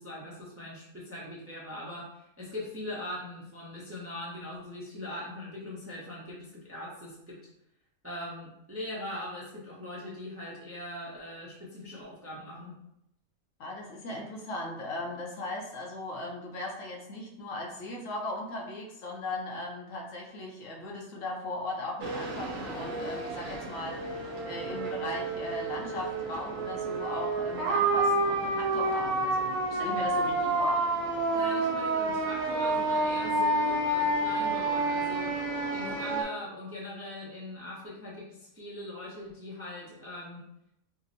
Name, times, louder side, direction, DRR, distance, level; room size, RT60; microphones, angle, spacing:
voice 1, 0.0-7.4 8.0-12.8 31.3-35.4 35.7-40.4, left 1 dB, 15° right, -6 dB, 0.5 m, -41 dB
voice 2, 13.6-30.9, left 2 dB, 70° left, -1 dB, 1.0 m, -38 dB
sound 1, 22.0-36.2, right 2 dB, 70° right, 1.1 m, -29 dB
5.0 x 2.0 x 2.6 m, 0.80 s
omnidirectional pair, 1.5 m